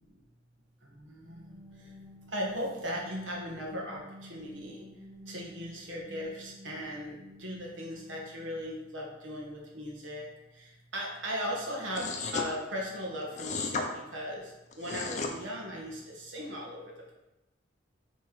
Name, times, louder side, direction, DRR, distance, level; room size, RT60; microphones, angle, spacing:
sound 1, 1.0-8.8, equal, 35° right, 1.9 m, -53 dB
voice 1, 1.0-1.5 2.3-4.0 4.3-4.9 5.3-10.3 10.9-12.0 12.3-13.8 14.1-14.4 14.8-17.1, equal, 90° right, -2 dB, 1.5 m, -37 dB
sound 2, 11.9-12.5 13.3-13.9 14.7-15.3, left 4 dB, 40° left, 0.7 m, -33 dB
6.1 x 3.6 x 4.5 m, 0.95 s
head